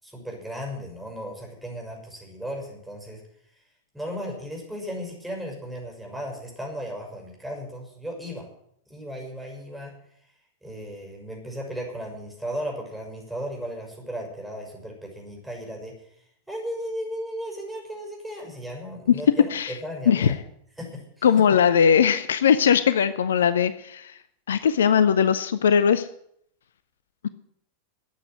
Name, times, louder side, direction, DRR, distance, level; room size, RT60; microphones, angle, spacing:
voice 1, 0.0-3.2 3.9-8.5 8.9-9.9 10.6-16.1 16.5-20.4 20.8-21.3, equal, 5° right, 0 dB, 6.3 m, -35 dB
voice 2, 21.2-24.1 24.5-26.1, left 7 dB, 65° left, 14 dB, 0.7 m, -19 dB
13.5 x 8.4 x 9.4 m, 0.71 s
figure-of-eight pair, 90°, 0 cm